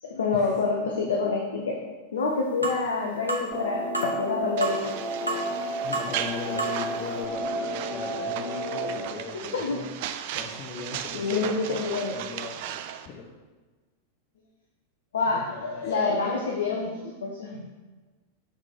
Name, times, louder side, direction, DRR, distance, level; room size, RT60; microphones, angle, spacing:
voice 1, 0.0-1.8 2.1-4.9 5.6-5.7 9.5-9.8 11.1-12.2 15.1-17.7, left 4 dB, 65° left, 0 dB, 0.7 m, -27 dB
sound 1, 2.6-2.8 3.3-3.5 3.9-4.1 4.6-4.8 5.3-5.6 5.9-6.1 6.6-6.8 7.2-7.3, right 3 dB, 85° right, 0.9 m, -30 dB
sound 2, 3.5-9.1, right 1 dB, 10° left, 1.3 m, -32 dB
sound 3, 4.6-13.1, right 10 dB, 50° right, 0.4 m, -37 dB
voice 2, 5.8-9.9 10.3-12.7 13.0-13.3 15.3-15.9, left 5 dB, 35° left, -2 dB, 0.8 m, -39 dB
6.8 x 4.0 x 4.4 m, 1.3 s
figure-of-eight pair, 90°, 0 cm